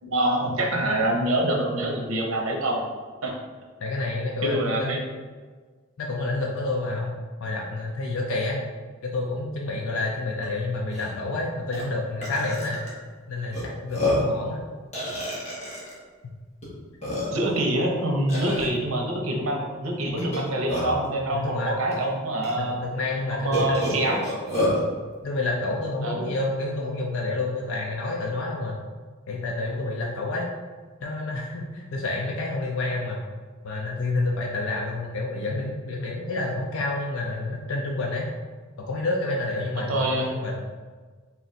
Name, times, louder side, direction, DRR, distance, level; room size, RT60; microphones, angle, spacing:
voice 1, 0.0-2.8 3.2-3.3 4.4-5.0 17.3-22.9 23.3-24.2 26.0-26.3 39.7-40.3, right 1 dB, 85° right, 1 dB, 0.8 m, -25 dB
voice 2, 3.8-5.0 6.0-8.6 9.0-12.8 13.3-14.7 18.3-18.7 21.3-21.8 22.6-23.8 25.2-28.8 29.3-30.5 31.0-33.2 33.6-38.3 38.8-40.6, left 2 dB, 70° left, -1 dB, 0.5 m, -29 dB
Burping eructation, 10.4-10.5 10.9-11.1 11.7-11.8 12.2-12.9 13.5-13.6 13.9-14.3 14.9-15.9 16.6-16.7 17.0-17.6 18.3-18.6 20.2-21.1 21.9-22.0 22.4-22.5 23.5-24.8, left 1 dB, 35° left, 1.3 m, -28 dB
4.0 x 2.5 x 4.1 m, 1.4 s
head